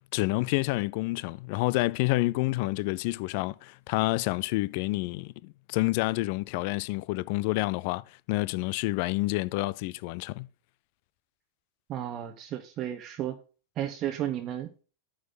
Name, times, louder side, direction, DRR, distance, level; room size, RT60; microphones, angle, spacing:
voice 1, 0.1-10.5, left 21 dB, 45° left, 0.4 m, -28 dB
voice 2, 11.9-13.4 13.8-14.8, right 11 dB, 35° right, 0.9 m, -33 dB
9.3 x 6.4 x 3.8 m
figure-of-eight pair, 90°, 0 cm